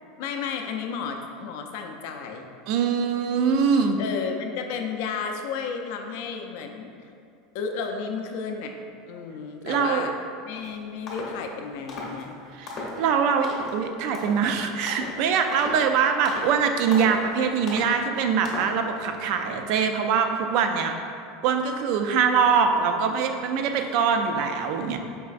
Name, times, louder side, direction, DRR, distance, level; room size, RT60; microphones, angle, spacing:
voice 1, 0.2-2.5 4.0-6.9 7.5-8.8 9.1-10.1 10.4-12.3, left 5 dB, 60° left, 4 dB, 0.4 m, -32 dB
voice 2, 2.7-4.0 9.6-10.1 12.6-20.9 21.4-25.0, right 6 dB, 50° right, 5 dB, 0.3 m, -23 dB
sound 1, 10.5-10.7 11.1-11.4 11.9-12.2 12.7-13.0 13.4-13.8 14.1-14.5 14.9-15.2 15.5-15.9 16.2-16.5 16.9-17.3 17.7-17.9 18.4-18.8, left 2 dB, 30° left, 0.7 m, -36 dB
4.7 x 3.1 x 2.5 m, 2.5 s
supercardioid pair, 165°, 0 cm